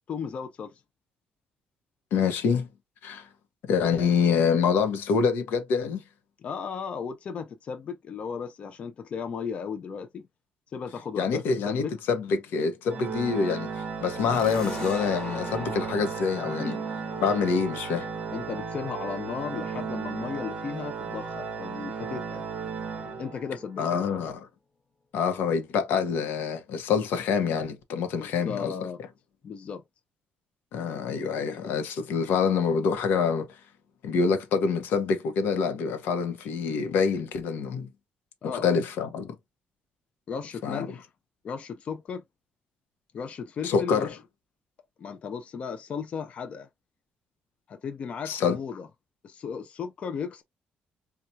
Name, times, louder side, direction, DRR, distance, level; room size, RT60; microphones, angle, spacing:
voice 1, 0.1-0.8 6.4-10.3 10.7-11.9 16.6-16.9 18.3-22.4 23.2-24.0 28.2-29.0 29.4-29.8 38.4-38.7 40.3-41.1 41.4-42.2 43.1-44.2 45.0-46.7 47.7-48.9 49.2-50.4, left 6 dB, 40° left, 0.4 m, -35 dB
voice 2, 2.1-2.7 3.0-3.3 3.6-6.0 11.2-16.7 17.2-18.1 23.8-24.5 25.1-28.7 30.7-33.5 34.0-37.9 38.4-39.3 40.6-40.9 43.6-44.1 48.3-48.6, left 6 dB, 85° left, 0.8 m, -26 dB
Organ, 12.9-23.7, right 5 dB, 35° right, 0.7 m, -35 dB
sound 1, 14.3-21.5, left 2 dB, 20° left, 1.0 m, -44 dB
4.3 x 2.3 x 2.6 m
cardioid pair, 170°, 3 cm